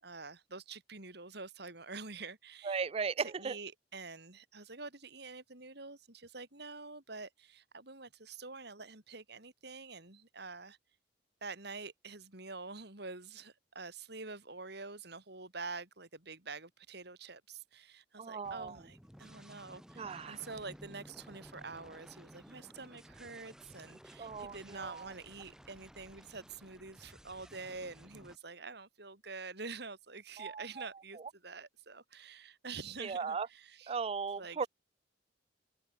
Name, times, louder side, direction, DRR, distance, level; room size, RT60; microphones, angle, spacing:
voice 1, 0.0-2.8 3.2-10.8 11.4-34.0 34.4-34.7, right 4 dB, 60° right, 4.6 m, -47 dB
voice 2, 2.6-3.5 18.2-18.8 20.0-20.4 24.2-25.0 30.4-30.9 33.0-33.5 33.9-34.7, right 5 dB, 35° right, 0.4 m, -37 dB
sound 1, 18.4-28.4, equal, 5° right, 4.5 m, -55 dB
head